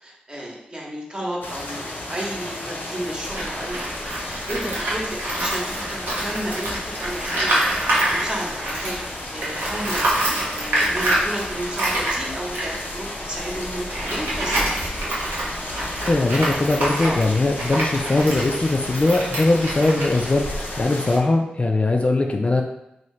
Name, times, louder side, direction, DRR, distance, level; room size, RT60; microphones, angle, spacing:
voice 1, 0.0-7.6 7.9-14.8 17.0-17.2, right 1 dB, 25° right, -2 dB, 1.0 m, -32 dB
sound 1, 1.4-21.2, left 1 dB, 70° left, 0.7 m, -34 dB
Tools, 3.2-9.1 9.4-20.8, right 1 dB, 85° right, 0.9 m, -26 dB
voice 2, 16.1-22.6, left 2 dB, 40° left, 3 dB, 0.4 m, -20 dB
2.8 x 2.7 x 3.2 m, 0.85 s
cardioid pair, 45°, 3 cm